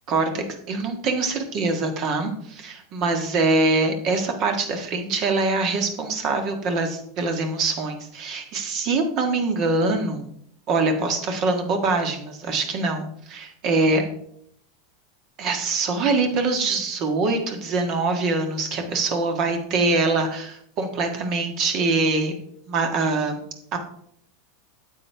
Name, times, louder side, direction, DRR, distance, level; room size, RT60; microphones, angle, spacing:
voice 1, 0.1-10.3 10.7-14.0 15.4-22.3 22.7-23.4 23.7-23.8, right 3 dB, 50° right, 5 dB, 1.6 m, -24 dB
9.1 x 7.7 x 3.4 m, 0.69 s
hypercardioid pair, 110°, 0 cm